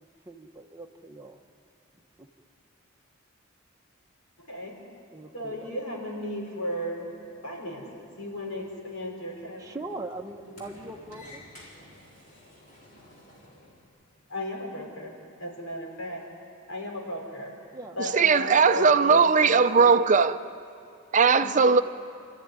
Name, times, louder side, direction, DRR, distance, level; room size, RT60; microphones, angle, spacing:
voice 1, 0.0-1.4 2.2-2.3 5.1-5.7 9.6-11.4 17.7-18.6 21.4-21.6, right 2 dB, 15° right, 1.0 m, -41 dB
voice 2, 4.4-4.7 5.3-7.1 7.4-9.8 10.4-10.6 14.3-16.3 16.7-17.5 17.9-20.0 21.4-21.5, left 1 dB, 90° left, 5.4 m, -36 dB
Sliding door, 7.0-13.9, left 1 dB, 40° left, 4.2 m, -53 dB
voice 3, 18.0-20.4 21.1-21.8, right 5 dB, 40° right, 0.6 m, -19 dB
28.5 x 14.0 x 9.7 m
head